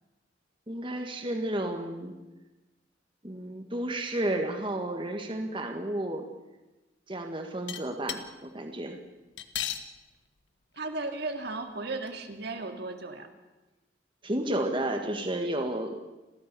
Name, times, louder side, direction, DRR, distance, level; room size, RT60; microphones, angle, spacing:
voice 1, 0.7-2.1 3.2-6.3 7.1-9.0 14.2-16.0, right 1 dB, 30° right, 4 dB, 1.8 m, -32 dB
sound 1, 7.7-8.2 9.4-9.8 10.8-10.9 11.1-11.2 12.1-12.2, left 10 dB, 75° left, 1.4 m, -33 dB
voice 2, 10.7-13.3, right 3 dB, 60° right, 5 dB, 2.2 m, -35 dB
30.0 x 13.5 x 6.9 m, 1.1 s
head